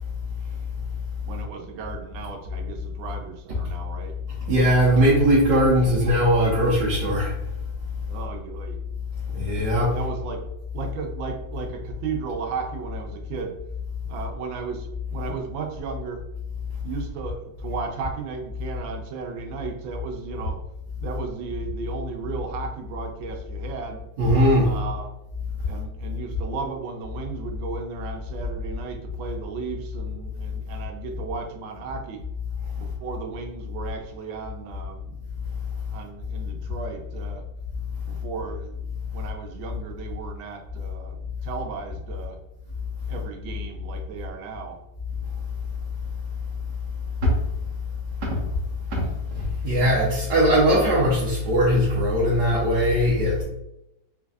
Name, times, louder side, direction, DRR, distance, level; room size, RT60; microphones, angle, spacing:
voice 1, 1.3-4.2 8.1-8.8 9.9-10.4 10.7-13.6 14.1-16.2 16.8-20.6 21.0-24.0 24.6-25.1 25.6-32.2 32.8-35.2 35.9-37.4 38.1-38.8 39.1-42.4 43.1-44.8, right 5 dB, 90° right, 3 dB, 1.4 m, -35 dB
voice 2, 4.5-7.3 9.3-9.9 24.2-24.7 47.2-47.3 48.2-48.4 48.9-49.0 49.3-53.4, equal, 70° right, -6 dB, 1.4 m, -20 dB
4.2 x 2.6 x 2.4 m, 0.87 s
omnidirectional pair, 2.1 m